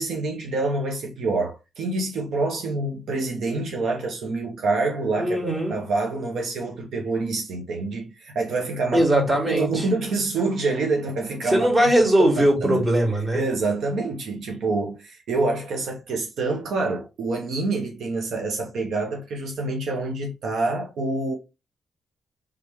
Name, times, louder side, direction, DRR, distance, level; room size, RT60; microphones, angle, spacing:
voice 1, 0.0-5.4 5.7-11.7 12.2-12.8 13.3-21.3, right 3 dB, 75° right, 1.0 m, -26 dB
voice 2, 5.2-5.8 8.9-9.8 11.4-13.4, right 1 dB, 25° right, 2.1 m, -20 dB
3.7 x 3.5 x 3.1 m
cardioid pair, 85°, 0 cm